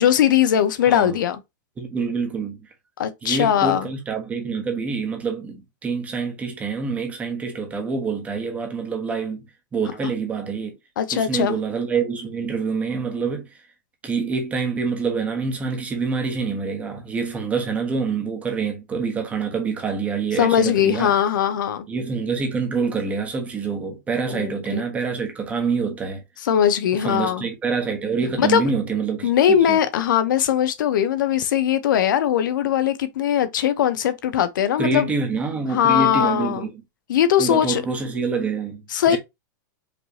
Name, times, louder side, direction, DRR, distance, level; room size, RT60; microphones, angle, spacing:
voice 1, 0.0-1.4 3.0-3.9 11.0-11.6 20.4-21.9 24.3-24.8 26.4-27.4 28.4-28.6 29.2-35.1 35.7-36.7 37.1-37.8 38.9-39.2, left 9 dB, 80° left, 0.8 m, -20 dB
voice 2, 0.9-1.2 1.8-2.7 3.2-9.4 9.7-10.8 11.1-13.6 14.0-21.1 21.9-26.2 27.0-29.8 34.8-36.7 37.4-39.2, right 5 dB, 15° right, 1.1 m, -26 dB
5.1 x 3.2 x 2.8 m
supercardioid pair, 165°, 10 cm